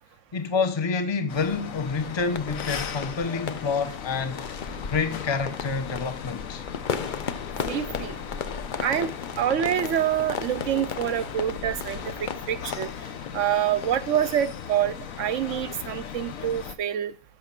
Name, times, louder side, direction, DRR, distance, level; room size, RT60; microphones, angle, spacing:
voice 1, 0.3-4.4 4.9-6.6, left 4 dB, 20° left, 0.8 m, -28 dB
sound 1, 1.3-16.8, left 8 dB, 65° left, 1.2 m, -38 dB
sound 2, 2.0-14.9, left 6 dB, 50° left, 0.6 m, -36 dB
voice 2, 7.7-8.2 8.8-12.9 13.3-17.1, right 10 dB, 65° right, 0.9 m, -26 dB
11.5 x 6.9 x 5.9 m
omnidirectional pair, 1.6 m